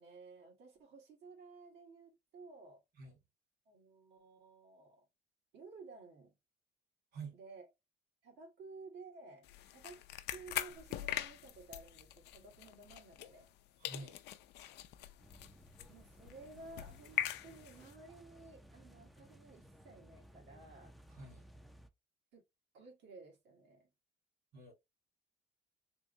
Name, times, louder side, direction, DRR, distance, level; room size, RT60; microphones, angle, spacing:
voice 1, 0.0-2.8 3.7-5.1 5.5-6.3 7.3-7.6 8.2-10.0 10.3-13.5 15.9-21.0 22.3-22.4 22.7-23.9, right 3 dB, 85° right, 1.7 m, -55 dB
sound 1, 9.4-13.6 13.8-17.9, left 13 dB, 80° left, 0.4 m, -43 dB
voice 2, 13.8-14.2 21.1-21.5 24.5-24.7, right 4 dB, 70° right, 2.4 m, -48 dB
sound 2, 15.2-21.9, equal, ahead, 0.5 m, -59 dB
3.7 x 2.6 x 3.0 m
cardioid pair, 110°, 17 cm